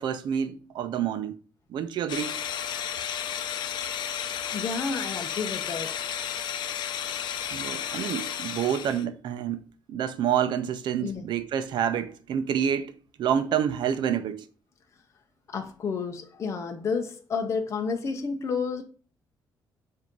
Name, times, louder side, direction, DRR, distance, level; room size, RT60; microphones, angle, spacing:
voice 1, 0.0-1.4 1.7-2.3 7.5-9.6 9.9-14.4, right 9 dB, 80° right, 0.7 m, -28 dB
sound 1, 2.1-9.0, left 9 dB, 80° left, 0.6 m, -33 dB
voice 2, 4.5-6.0 11.0-11.2 15.5-18.8, left 5 dB, 40° left, 0.8 m, -30 dB
7.6 x 2.8 x 5.3 m
cardioid pair, 150°, 8 cm